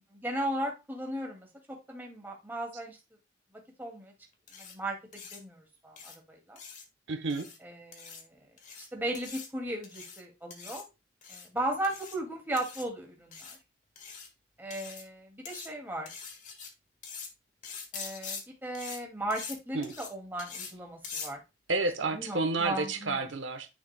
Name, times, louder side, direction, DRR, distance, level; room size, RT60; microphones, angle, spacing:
voice 1, 0.1-3.0 3.8-4.1 4.6-5.0 5.3-6.6 7.6-8.5 8.8-10.9 11.3-13.6 14.6-16.1 17.9-21.4 22.1-23.2, right 1 dB, 10° right, 2.2 m, -36 dB
sound 1, 4.5-4.7 5.1-5.4 6.0-6.2 6.6-6.8 7.3-7.6 7.9-8.2 8.6-8.9 9.1-9.5 9.8-10.2 10.5-10.8 11.2-11.5 11.8-12.2 12.6-12.8 13.3-13.6 14.0-14.3 14.7-15.1 15.5-15.7 16.1-16.7 17.0-17.3 17.6-18.4 18.7-19.0 19.3-19.6 19.8-20.1 20.4-20.7 21.0-21.3, left 5 dB, 40° left, 1.6 m, -43 dB
voice 2, 7.1-7.5 19.7-19.9 21.7-23.7, right 3 dB, 80° right, 1.0 m, -30 dB
10.0 x 5.9 x 2.2 m
head